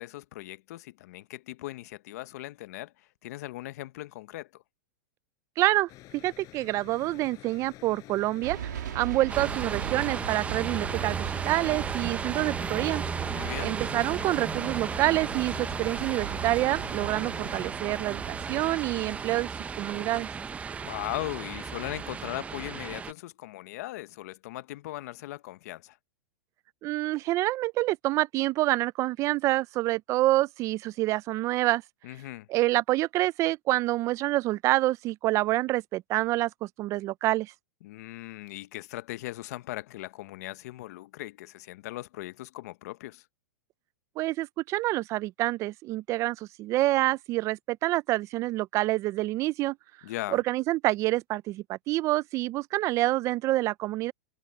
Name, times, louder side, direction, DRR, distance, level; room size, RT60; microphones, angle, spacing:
voice 1, 0.0-4.6 13.3-13.8 20.8-26.0 32.0-32.5 37.8-43.2 50.0-50.4, left 17 dB, 60° left, 1.1 m, -39 dB
voice 2, 5.6-13.0 13.6-19.5 19.8-20.3 26.8-31.8 32.5-37.5 44.2-49.8 50.3-54.1, right 17 dB, 30° right, 0.4 m, -27 dB
sound 1, 5.9-17.7, left 17 dB, 35° left, 6.5 m, -49 dB
sound 2, 8.4-19.2, right 11 dB, 85° right, 2.5 m, -40 dB
sound 3, 9.3-23.1, right 6 dB, 15° right, 0.8 m, -34 dB
hypercardioid pair, 135°, 10 cm